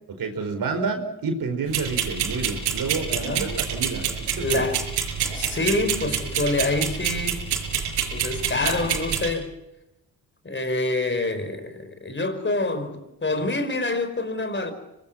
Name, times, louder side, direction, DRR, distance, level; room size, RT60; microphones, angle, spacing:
voice 1, 0.2-4.7, right 4 dB, 60° right, 4.8 m, -29 dB
sound 1, 1.7-9.3, right 8 dB, 80° right, 5.9 m, -27 dB
voice 2, 3.1-3.5 4.3-4.8 5.3-7.5 8.1-9.5 10.4-14.7, left 2 dB, 30° left, 4.9 m, -26 dB
25.5 x 19.5 x 7.4 m
supercardioid pair, 60°, 40 cm